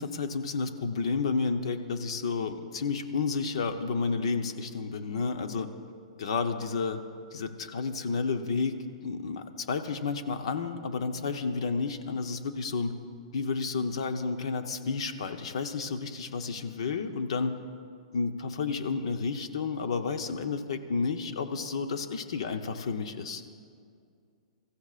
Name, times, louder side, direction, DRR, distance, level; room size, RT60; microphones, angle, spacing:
voice 1, 0.0-5.7 6.2-7.0 7.3-8.8 9.0-12.9 13.3-17.6 18.1-23.4, left 4 dB, 60° left, 8 dB, 0.8 m, -31 dB
24.5 x 14.5 x 2.5 m, 2.3 s
hypercardioid pair, 175°, 3 cm